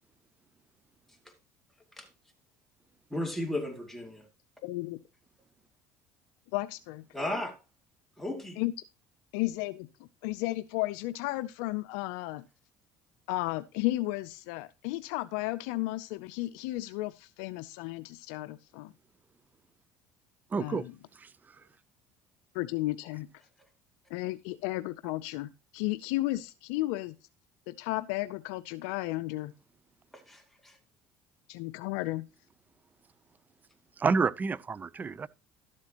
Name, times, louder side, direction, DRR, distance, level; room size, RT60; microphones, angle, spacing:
voice 1, 3.1-4.3 7.1-7.6 8.2-8.6 30.1-30.8, left 1 dB, 5° left, 2.5 m, -35 dB
voice 2, 4.6-5.0 6.5-7.0 8.6-8.7 9.3-12.4 13.3-18.9 20.6-21.0 22.5-23.3 24.1-27.1 27.7-29.5 31.5-32.2, left 18 dB, 85° left, 0.5 m, -33 dB
voice 3, 20.5-20.8 34.0-35.3, right 4 dB, 25° right, 0.5 m, -28 dB
12.5 x 7.5 x 2.9 m
supercardioid pair, 100°, 7 cm